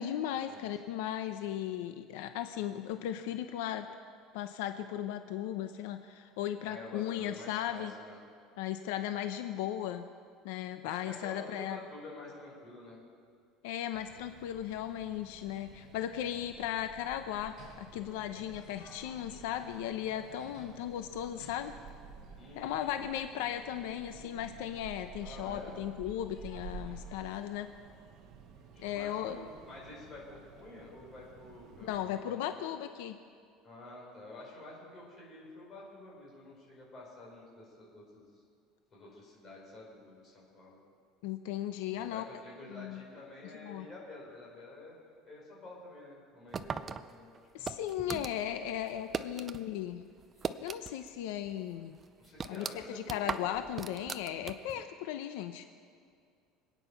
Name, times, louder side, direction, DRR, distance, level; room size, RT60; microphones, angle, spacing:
voice 1, 0.0-3.9 4.3-7.9 8.6-10.0 10.4-11.8 13.6-21.7 22.6-27.7 28.8-29.4 31.8-33.2 41.2-42.2 42.7-43.0 43.6-43.9 47.5-50.0 50.6-52.0 52.5-55.6, left 11 dB, 85° left, 8 dB, 0.7 m, -36 dB
voice 2, 6.6-8.2 10.8-13.0 22.4-23.0 25.2-25.8 28.7-32.8 33.6-38.4 38.9-40.8 41.9-45.0 45.2-47.3 47.6-47.7 48.9-49.4 52.2-53.7, left 2 dB, 25° left, -3 dB, 4.8 m, -49 dB
sound 1, 13.9-32.1, right 5 dB, 45° right, 1.3 m, -52 dB
sound 2, 17.5-27.4, left 4 dB, 50° left, 3.8 m, -57 dB
sound 3, 46.5-49.6 49.9-51.2 51.5-51.6 52.0-54.8, right 5 dB, 20° right, 0.4 m, -39 dB
26.0 x 9.3 x 5.8 m, 2.2 s
cardioid pair, 175°, 0 cm